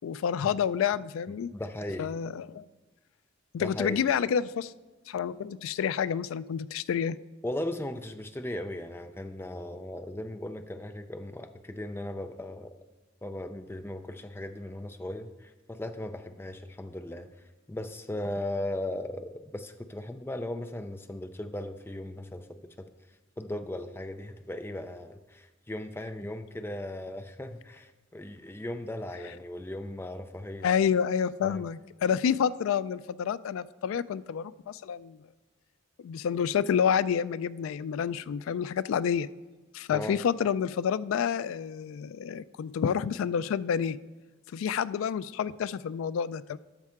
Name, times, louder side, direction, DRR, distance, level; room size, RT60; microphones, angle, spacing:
voice 1, 0.0-1.5 2.0-2.6 3.5-4.7 5.1-7.2 30.6-35.2 36.0-39.3 39.7-44.0 44.5-46.6, left 7 dB, 75° left, 18 dB, 0.3 m, -29 dB
voice 2, 1.3-2.1 3.6-4.0 7.4-12.7 13.2-17.3 17.7-22.9 23.4-30.7 31.4-31.6 39.9-40.2, left 1 dB, 10° left, 8 dB, 0.4 m, -37 dB
12.0 x 6.4 x 3.6 m, 1.2 s
head